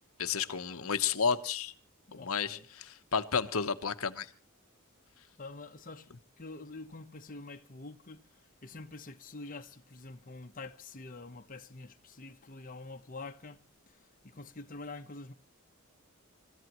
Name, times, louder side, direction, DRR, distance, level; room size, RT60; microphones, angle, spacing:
voice 1, 0.2-1.7 2.1-4.3, left 6 dB, 75° left, 1.0 m, -32 dB
voice 2, 2.1-2.7 5.4-15.3, left 3 dB, 40° left, 1.0 m, -47 dB
29.5 x 15.0 x 3.1 m
head